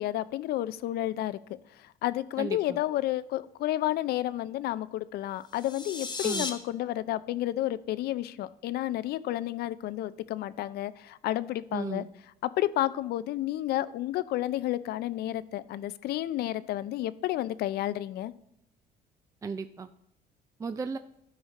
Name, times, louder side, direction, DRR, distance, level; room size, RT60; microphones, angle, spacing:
voice 1, 0.0-1.4 2.0-12.1 12.4-18.3, left 14 dB, 70° left, 17 dB, 0.5 m, -31 dB
voice 2, 2.4-2.8 6.2-6.5 11.7-12.1 19.4-19.9 20.6-21.0, right 5 dB, 20° right, 10 dB, 0.3 m, -35 dB
sound 1, 5.4-6.5, left 3 dB, 25° left, 1.2 m, -35 dB
12.5 x 5.0 x 4.1 m, 0.78 s
cardioid pair, 110°, 17 cm